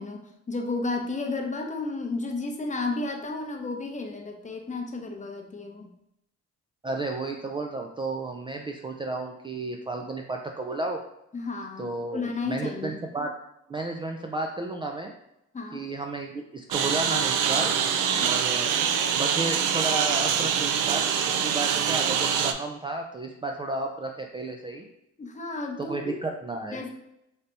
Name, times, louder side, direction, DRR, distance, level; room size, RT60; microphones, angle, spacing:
voice 1, 0.0-5.9 11.3-13.0 15.5-15.8 18.0-18.3 25.2-26.1 26.7-26.9, left 3 dB, 25° left, 3 dB, 0.7 m, -33 dB
voice 2, 6.8-11.0 11.8-13.3 13.7-15.1 15.7-17.7 18.2-18.9 19.1-24.8 25.8-26.8, right 2 dB, 15° right, 2 dB, 0.3 m, -32 dB
Engine, 16.7-22.5, right 7 dB, 85° right, 0.5 m, -25 dB
3.3 x 2.7 x 4.0 m, 0.83 s
cardioid pair, 90°, 30 cm